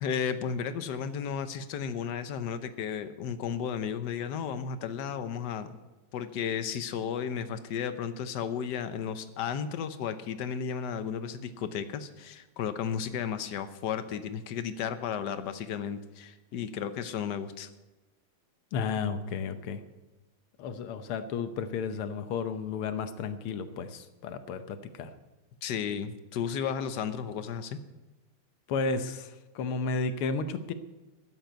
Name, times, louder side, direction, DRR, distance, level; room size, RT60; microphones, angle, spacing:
voice 1, 0.0-5.8 6.1-17.7 25.6-27.8, left 7 dB, 60° left, 10 dB, 1.3 m, -34 dB
voice 2, 18.7-19.8 20.6-25.1 28.7-30.7, left 4 dB, 85° left, 10 dB, 1.8 m, -33 dB
12.5 x 8.0 x 9.1 m, 1.1 s
omnidirectional pair, 2.3 m